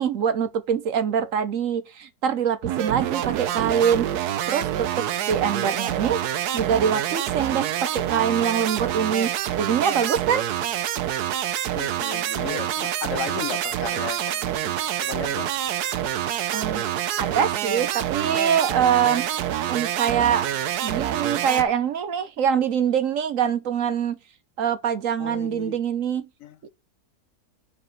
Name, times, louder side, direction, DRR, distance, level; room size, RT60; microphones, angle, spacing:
voice 1, 0.0-6.2 6.5-10.4 16.5-16.9 17.2-19.3 19.7-20.5 20.8-24.2 24.6-26.3, right 8 dB, 65° right, 1.1 m, -24 dB
sound 1, 2.6-21.6, right 11 dB, 80° right, 1.2 m, -27 dB
voice 2, 11.8-14.7 15.0-15.5 25.2-25.8 26.4-26.6, left 9 dB, 65° left, 0.9 m, -35 dB
5.3 x 4.8 x 5.5 m
omnidirectional pair, 1.7 m